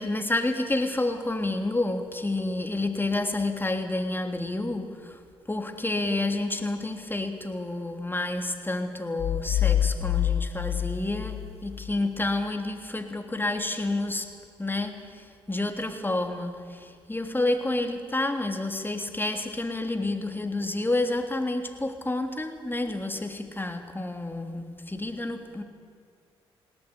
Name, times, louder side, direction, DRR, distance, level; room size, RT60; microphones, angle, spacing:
voice 1, 0.0-5.2 5.5-14.3 14.6-25.6, left 2 dB, 15° left, 6 dB, 3.2 m, -29 dB
sound 1, 9.2-12.0, left 11 dB, 60° left, 0.8 m, -27 dB
19.0 x 18.0 x 9.9 m, 2.1 s
hypercardioid pair, 45°, 12 cm